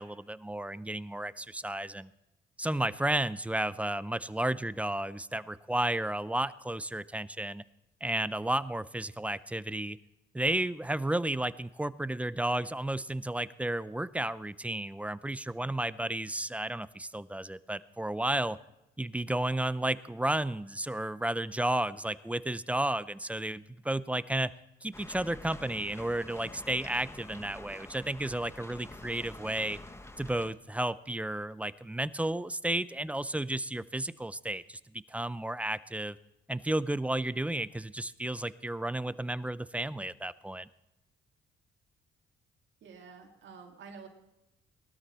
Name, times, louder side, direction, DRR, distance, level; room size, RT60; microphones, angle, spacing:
voice 1, 0.0-2.1 2.6-7.6 8.0-10.0 10.3-18.6 19.0-24.5 24.8-29.8 30.2-36.2 36.5-40.7, right 1 dB, 5° right, 17 dB, 0.5 m, -32 dB
sound 1, 24.9-30.5, left 1 dB, 15° left, 1.1 m, -47 dB
voice 2, 42.8-44.1, right 5 dB, 70° right, 2 dB, 1.9 m, -49 dB
19.5 x 13.0 x 4.2 m, 0.92 s
cardioid pair, 90°, 20 cm